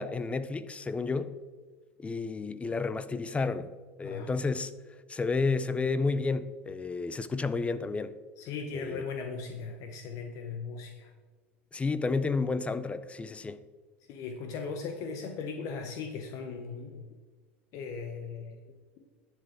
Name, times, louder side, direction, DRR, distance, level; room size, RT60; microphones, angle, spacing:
voice 1, 0.0-1.4 2.0-3.7 4.0-4.7 5.1-8.2 8.7-9.0 11.7-13.6, left 4 dB, 20° left, 0.5 m, -31 dB
voice 2, 4.0-4.3 8.4-11.1 14.1-17.0 17.7-18.8, left 5 dB, 55° left, 1.0 m, -38 dB
11.0 x 7.4 x 3.6 m
hypercardioid pair, 85°, 7 cm